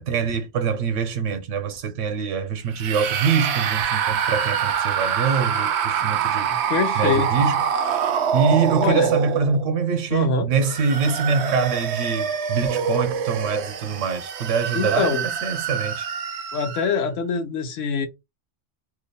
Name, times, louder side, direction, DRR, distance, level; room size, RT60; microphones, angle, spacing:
voice 1, 0.1-6.5 7.0-7.6 8.3-16.1, right 6 dB, 90° right, 1.1 m, -24 dB
sound 1, 2.7-9.8 10.5-17.0, right 7 dB, 70° right, 0.8 m, -25 dB
voice 2, 6.0-7.3 8.8-9.1 10.1-10.5 14.7-15.2 16.5-18.1, left 5 dB, 85° left, 1.1 m, -24 dB
2.7 x 2.3 x 3.9 m
omnidirectional pair, 1.2 m